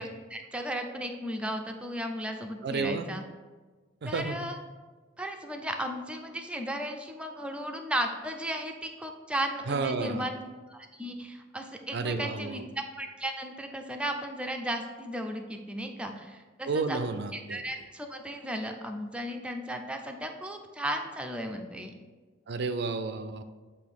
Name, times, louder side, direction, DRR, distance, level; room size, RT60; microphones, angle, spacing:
voice 1, 0.0-3.2 4.0-4.6 5.2-10.4 10.7-12.6 13.0-17.1 17.3-21.9, equal, 5° right, 4 dB, 0.6 m, -35 dB
voice 2, 2.6-3.1 4.0-4.5 9.7-10.3 11.9-12.7 16.7-17.6 22.5-23.4, right 4 dB, 60° right, 10 dB, 0.5 m, -31 dB
8.2 x 2.7 x 5.2 m, 1.3 s
head